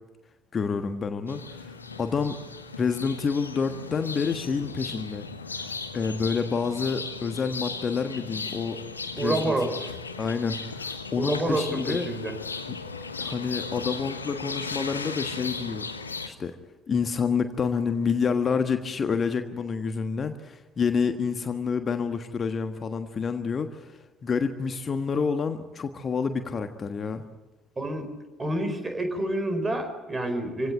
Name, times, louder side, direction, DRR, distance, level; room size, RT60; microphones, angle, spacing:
voice 1, 0.5-2.4 2.8-5.2 5.6-8.8 9.1-9.4 10.2-12.1 13.2-15.8 16.3-16.6 16.9-27.2, left 5 dB, 35° left, 8 dB, 1.4 m, -28 dB
sound 1, 1.3-16.3, left 4 dB, 80° left, 1.2 m, -36 dB
voice 2, 9.2-9.7 11.2-12.3 27.8-28.1 28.4-30.7, right 1 dB, 20° right, 7 dB, 4.8 m, -28 dB
25.5 x 17.0 x 9.2 m, 1.1 s
figure-of-eight pair, 55°, 0 cm